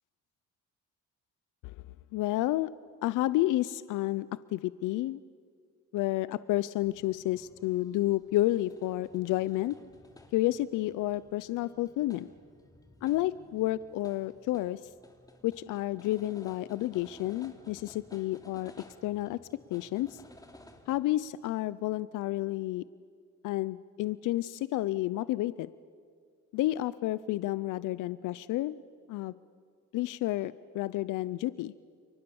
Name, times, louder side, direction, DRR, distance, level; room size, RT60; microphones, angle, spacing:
voice 1, 2.1-2.7 3.0-5.2 5.9-9.7 10.3-12.3 13.0-14.8 15.4-18.7 19.0-19.4 19.7-20.2 20.9-22.8 23.4-25.7 26.5-28.7 29.1-29.3 29.9-31.7, left 16 dB, 85° left, 17 dB, 0.6 m, -30 dB
sound 1, 6.8-21.0, left 2 dB, 10° left, 2.8 m, -56 dB
29.5 x 23.5 x 7.1 m, 2.1 s
cardioid pair, 90°, 30 cm